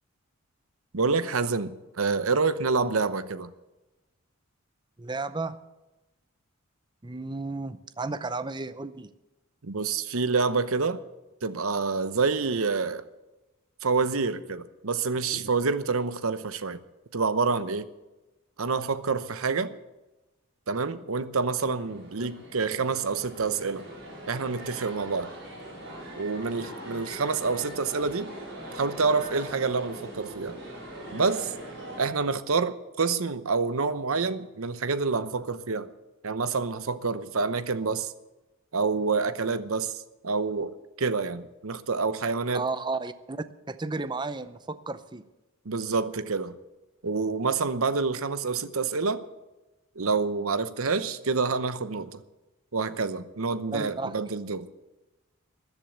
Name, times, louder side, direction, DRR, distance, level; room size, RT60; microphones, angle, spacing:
voice 1, 0.9-3.5 9.6-11.0 11.4-13.0 13.8-16.8 17.1-17.9 18.6-19.7 20.7-23.9 24.3-25.3 26.2-28.3 28.7-30.6 31.1-31.5 32.0-35.9 36.2-38.1 38.7-42.6 45.6-46.6 47.0-49.2 50.0-52.2 52.7-54.7, right 4 dB, 75° right, 0.9 m, -27 dB
voice 2, 5.0-5.6 7.0-9.1 22.2-22.3 42.5-45.2 53.7-54.1, right 3 dB, 20° right, 0.6 m, -33 dB
sound 1, 21.6-32.0, right 1 dB, 60° right, 5.3 m, -41 dB
14.0 x 11.0 x 8.0 m
head